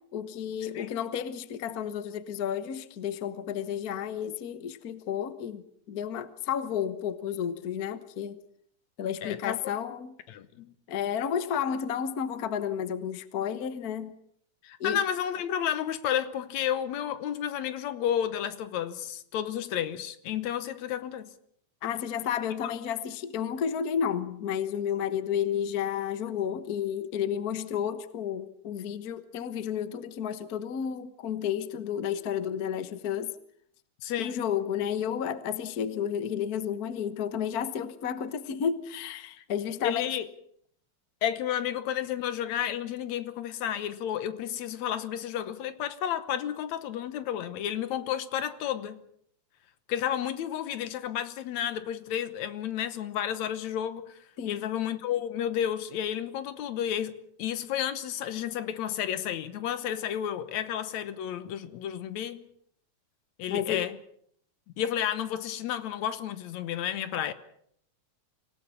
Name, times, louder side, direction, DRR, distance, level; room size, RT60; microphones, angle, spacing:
voice 1, 0.1-8.4 9.0-10.2 10.9-14.1 14.8-15.0 21.8-33.3 34.2-40.1 54.4-54.7 63.5-63.9, left 8 dB, 55° left, 1.0 m, -32 dB
voice 2, 9.2-9.6 10.3-10.7 14.6-21.3 22.6-22.7 34.0-34.4 39.8-40.3 41.2-49.0 49.9-54.2 54.5-62.5 63.4-64.0 64.8-67.3, left 10 dB, 75° left, 2.4 m, -31 dB
25.5 x 17.0 x 7.1 m
omnidirectional pair, 3.3 m